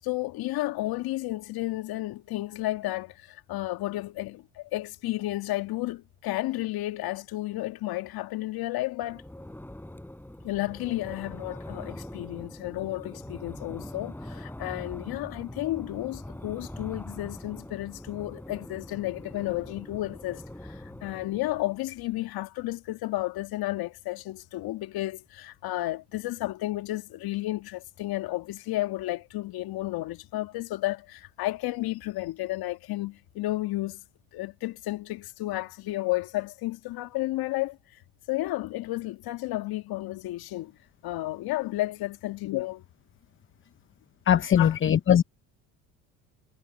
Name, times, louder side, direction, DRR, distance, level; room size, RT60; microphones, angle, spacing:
voice 1, 0.0-9.2 10.4-34.0 34.3-38.0 38.3-40.7 41.0-42.8 44.6-44.7, left 17 dB, 60° left, 1.9 m, -32 dB
Wind, 9.0-21.6, left 1 dB, 5° left, 5.0 m, -43 dB
voice 2, 44.3-45.2, left 9 dB, 30° left, 0.8 m, -20 dB
hypercardioid pair, 70°, 41 cm